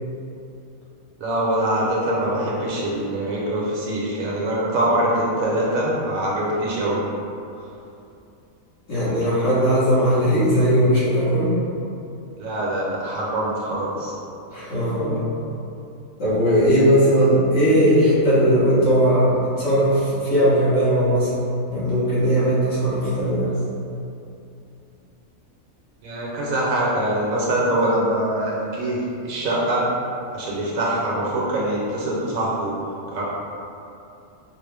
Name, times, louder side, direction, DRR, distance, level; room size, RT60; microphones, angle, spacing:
voice 1, 1.2-7.0 12.4-14.1 26.0-29.9 30.3-32.7 33.1-33.2, right 1 dB, 70° right, -6 dB, 1.2 m, -23 dB
voice 2, 8.9-11.5 14.5-15.2 16.2-19.3 19.6-21.3 21.7-23.5, equal, 60° left, -11 dB, 1.7 m, -18 dB
5.0 x 2.1 x 3.3 m, 2.7 s
omnidirectional pair, 1.5 m